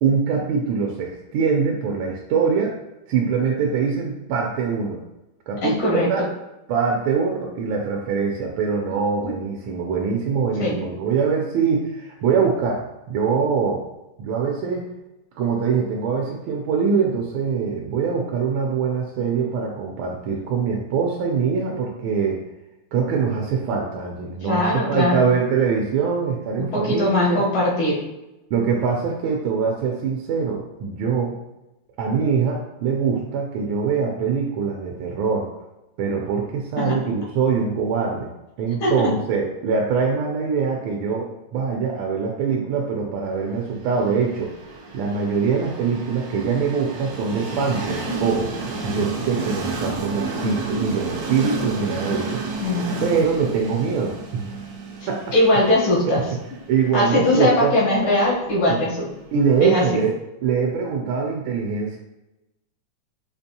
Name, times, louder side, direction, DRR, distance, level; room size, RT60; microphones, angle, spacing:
voice 1, 0.0-2.8 3.1-5.0 5.5-6.3 6.7-13.8 14.2-14.8 15.4-22.4 22.9-27.4 28.5-31.4 32.0-35.5 36.0-38.3 38.6-44.5 44.9-52.4 53.0-54.4 55.1-55.2 56.7-57.8 58.7-58.8 59.3-60.2 60.4-62.0, right 5 dB, 85° right, 0 dB, 1.4 m, -23 dB
voice 2, 5.6-6.1 9.2-9.3 10.6-10.8 24.4-25.3 26.6-28.0 36.8-37.0 38.8-39.0 52.6-53.2 55.3-56.2 56.9-59.1 59.6-59.9, left 1 dB, 90° left, -4 dB, 1.9 m, -20 dB
Train, 43.9-59.7, right 3 dB, 70° right, 1.0 m, -31 dB
5.0 x 2.6 x 2.7 m, 0.95 s
omnidirectional pair, 2.1 m